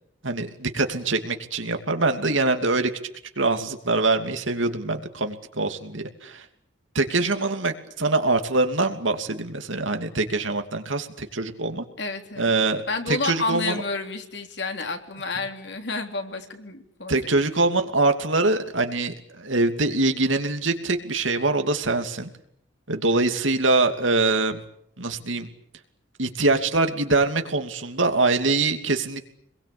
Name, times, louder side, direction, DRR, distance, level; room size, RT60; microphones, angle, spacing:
voice 1, 0.2-2.9 3.4-6.4 6.9-11.8 12.4-12.8 13.1-13.8 15.4-15.5 17.1-22.3 22.9-24.6 25.0-25.5 26.2-29.2, right 3 dB, 90° right, 7 dB, 2.7 m, -24 dB
voice 2, 12.0-12.5 12.9-17.3, left 3 dB, 65° left, 5 dB, 3.5 m, -30 dB
27.0 x 22.0 x 8.6 m, 0.72 s
head